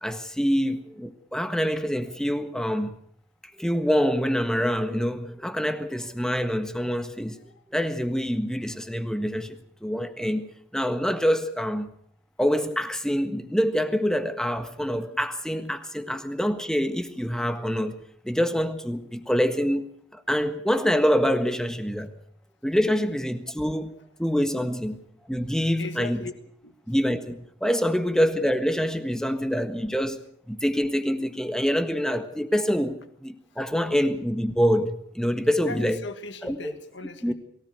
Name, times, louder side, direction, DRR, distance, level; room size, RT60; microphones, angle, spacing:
voice 1, 0.0-3.0 3.6-7.4 7.7-10.4 10.7-11.9 12.4-18.0 18.2-19.8 20.1-22.1 22.6-23.9 24.2-25.0 25.3-26.2 26.9-30.2 30.5-36.0 36.4-36.6 37.2-37.3, equal, 5° left, 1.5 m, -25 dB
voice 2, 25.8-26.3 26.6-26.8 33.5-33.8 35.6-37.3, left 3 dB, 60° left, 2.0 m, -39 dB
23.5 x 17.0 x 6.8 m
head